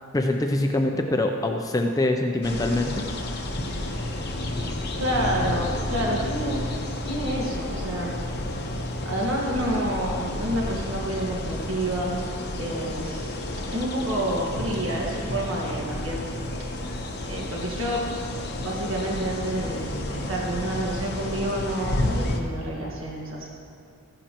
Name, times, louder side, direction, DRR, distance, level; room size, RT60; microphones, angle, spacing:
voice 1, 0.1-3.1, left 2 dB, 15° left, 4 dB, 0.4 m, -24 dB
sound 1, 2.4-22.4, left 1 dB, 50° left, 1.0 m, -31 dB
voice 2, 5.0-6.6 7.0-8.1 9.0-12.2 12.6-13.3 13.7-16.4 17.2-18.0 18.5-23.5, right 1 dB, 60° right, -3 dB, 1.6 m, -29 dB
15.0 x 11.5 x 3.0 m, 2.5 s
head